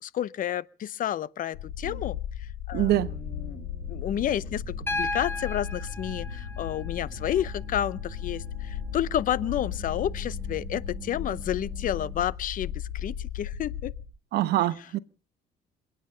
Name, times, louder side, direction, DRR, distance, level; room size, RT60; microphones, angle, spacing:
voice 1, 0.0-13.9, left 11 dB, 55° left, 0.7 m, -31 dB
sound 1, 1.5-14.0, left 10 dB, 85° left, 3.9 m, -36 dB
voice 2, 2.7-3.1 14.3-15.0, right 14 dB, 75° right, 1.0 m, -24 dB
sound 2, 2.9-12.3, right 5 dB, 40° right, 2.3 m, -45 dB
Piano, 4.9-8.9 10.4-10.5, left 2 dB, 15° left, 1.9 m, -36 dB
27.0 x 9.2 x 5.6 m
cardioid pair, 110°, 17 cm